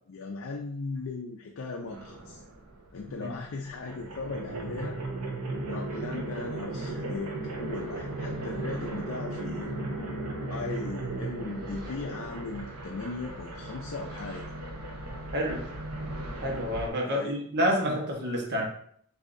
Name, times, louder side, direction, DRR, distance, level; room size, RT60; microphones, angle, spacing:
voice 1, 0.1-2.4 2.9-5.0 5.6-10.1 10.5-14.4 17.0-17.4, left 3 dB, 65° left, 2 dB, 0.5 m, -38 dB
sound 1, 1.9-3.1 3.4-16.9, right 2 dB, 90° right, 0.9 m, -36 dB
voice 2, 15.3-15.7 16.4-18.6, equal, 50° right, 0 dB, 1.1 m, -28 dB
6.6 x 2.7 x 2.6 m, 0.64 s
head